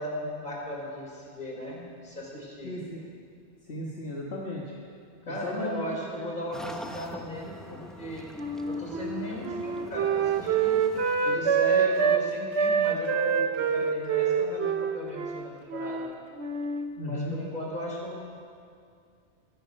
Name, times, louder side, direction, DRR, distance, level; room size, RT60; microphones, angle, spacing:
voice 1, 0.0-2.7 5.3-8.3 8.7-10.8 11.2-16.0 17.0-18.2, equal, 45° left, -2 dB, 3.9 m, -37 dB
voice 2, 2.6-3.1 3.7-4.8 5.3-5.9 6.2-6.3 17.0-17.4, left 1 dB, 70° left, -4 dB, 1.8 m, -35 dB
sound 1, 6.5-11.6, equal, ahead, 0.8 m, -44 dB
Wind instrument woodwind instrument, 8.4-12.2 12.5-16.1 16.4-16.9, right 6 dB, 80° right, 1.2 m, -26 dB
23.5 x 11.0 x 5.4 m, 2.3 s
omnidirectional pair, 1.1 m